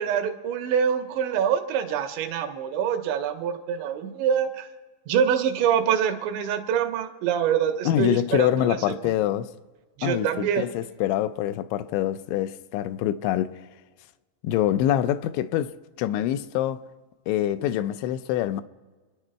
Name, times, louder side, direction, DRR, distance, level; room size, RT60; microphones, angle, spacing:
voice 1, 0.0-4.7 5.1-8.8 9.0-9.1 10.0-10.7, right 8 dB, 85° right, 3.4 m, -25 dB
voice 2, 7.9-9.5 10.0-13.6 14.4-16.8 17.3-18.6, left 12 dB, 85° left, 2.9 m, -25 dB
28.0 x 10.5 x 4.6 m
omnidirectional pair, 5.3 m